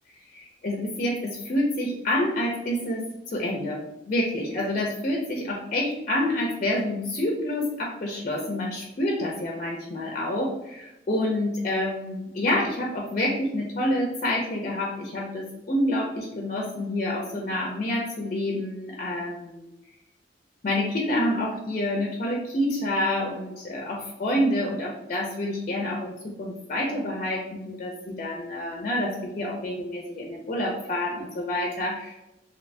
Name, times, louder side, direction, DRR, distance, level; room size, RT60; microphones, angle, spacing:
voice 1, 0.3-3.8 4.1-19.7 20.6-32.2, left 1 dB, 40° left, -1 dB, 0.4 m, -28 dB
3.2 x 2.9 x 2.5 m, 0.94 s
head